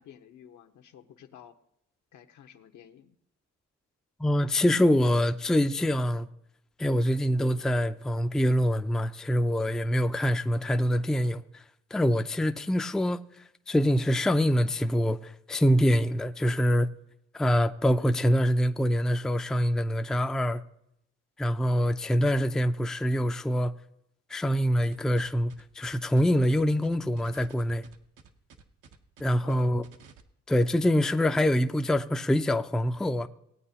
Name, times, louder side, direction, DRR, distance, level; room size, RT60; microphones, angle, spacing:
voice 1, 0.0-1.6 2.1-3.2 9.8-10.1 29.4-29.8, left 9 dB, 75° left, 1.0 m, -51 dB
voice 2, 4.2-6.3 6.8-11.6 11.9-13.2 13.7-16.9 17.3-20.6 21.4-23.7 24.3-27.8 29.2-29.8 30.5-33.3, equal, ahead, 0.4 m, -25 dB
sound 1, 24.8-30.2, right 5 dB, 85° right, 1.0 m, -53 dB
18.5 x 8.8 x 2.8 m
cardioid pair, 90°, 30 cm